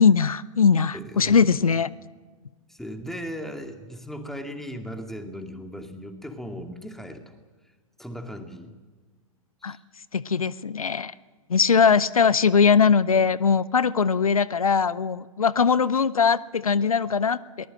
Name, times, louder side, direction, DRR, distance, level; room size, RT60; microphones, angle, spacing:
voice 1, 0.0-1.9 9.6-9.8 10.1-11.1 11.5-17.7, left 6 dB, 80° left, 19 dB, 0.6 m, -20 dB
voice 2, 0.9-1.6 2.7-7.3 8.0-8.8 9.6-9.8 11.7-12.0, equal, ahead, 5 dB, 2.2 m, -37 dB
22.5 x 19.5 x 7.7 m, 1.3 s
figure-of-eight pair, 105°, 18 cm